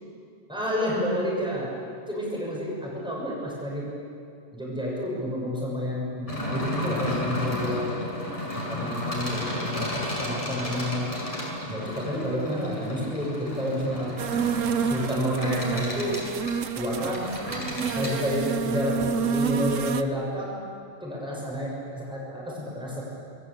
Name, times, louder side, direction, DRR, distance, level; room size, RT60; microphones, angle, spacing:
voice 1, 0.5-1.8 2.1-3.9 4.5-8.1 8.5-11.1 11.7-14.2 14.8-16.2 16.8-17.3 17.9-20.5 21.0-23.0, equal, 5° right, -4 dB, 6.9 m, -30 dB
sound 1, 6.3-18.1, left 1 dB, 25° left, 6.5 m, -33 dB
sound 2, 12.2-15.3, right 3 dB, 35° right, 1.7 m, -44 dB
sound 3, 14.2-20.0, right 6 dB, 60° right, 1.3 m, -29 dB
27.0 x 21.5 x 8.4 m, 2.4 s
omnidirectional pair, 1.5 m